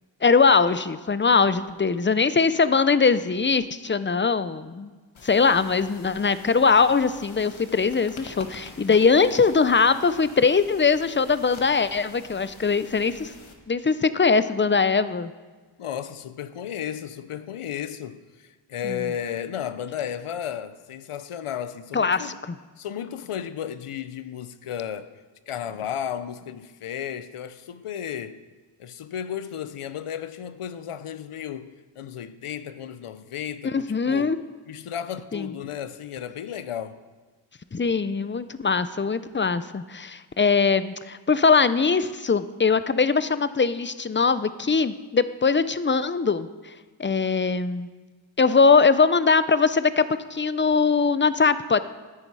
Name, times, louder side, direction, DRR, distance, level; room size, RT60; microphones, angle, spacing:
voice 1, 0.2-4.9 5.2-13.3 13.7-15.3 18.8-19.0 21.9-22.6 33.6-34.4 35.3-35.5 37.7-46.7 47.0-47.9 48.4-50.0 50.3-51.8, left 5 dB, 25° left, 0.6 m, -21 dB
sound 1, 5.1-13.5, left 3 dB, 70° left, 1.5 m, -46 dB
voice 2, 15.8-22.4 22.8-28.4 28.8-34.4 34.7-37.0, left 9 dB, 90° left, 0.7 m, -34 dB
14.5 x 9.7 x 4.7 m
cardioid pair, 45°, 49 cm